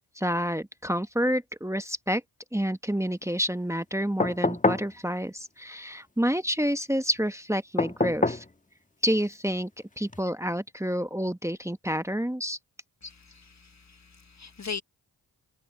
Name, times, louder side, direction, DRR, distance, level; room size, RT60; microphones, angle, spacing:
voice 1, 0.2-2.2 2.5-8.4 9.0-9.7 10.0-12.6, equal, 5° right, 1.3 m, -28 dB
sound 1, 4.2-4.9 7.8-8.5 10.1-10.2, left 2 dB, 15° left, 1.4 m, -26 dB
voice 2, 13.0-14.8, left 5 dB, 35° left, 1.3 m, -40 dB
supercardioid pair, 40°, 45 cm